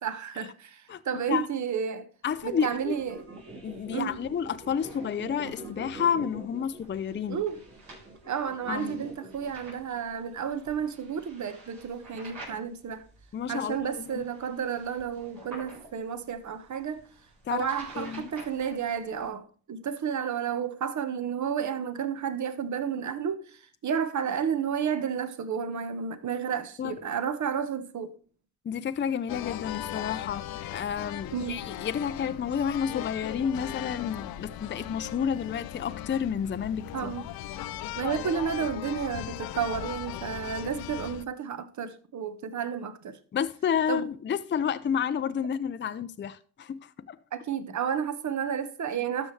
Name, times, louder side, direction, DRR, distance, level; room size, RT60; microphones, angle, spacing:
voice 1, 0.0-2.1 2.4-3.2 3.9-4.2 7.3-7.6 8.3-13.0 13.5-17.0 17.5-28.1 31.3-31.6 36.9-37.3 38.0-43.2 43.9-44.1 47.3-49.3, right 7 dB, 55° right, 1.2 m, -31 dB
voice 2, 2.2-3.0 3.6-7.4 8.7-9.0 13.3-14.2 17.5-17.7 18.0-18.3 26.8-26.9 28.6-30.4 30.7-36.8 43.3-47.2, left 8 dB, 30° left, 0.5 m, -30 dB
sound 1, 2.3-19.3, right 2 dB, 80° right, 4.5 m, -52 dB
sound 2, 2.8-9.5, right 2 dB, 35° right, 2.3 m, -44 dB
sound 3, 29.3-41.2, left 12 dB, 80° left, 0.6 m, -38 dB
12.5 x 6.1 x 3.2 m
supercardioid pair, 65°, 36 cm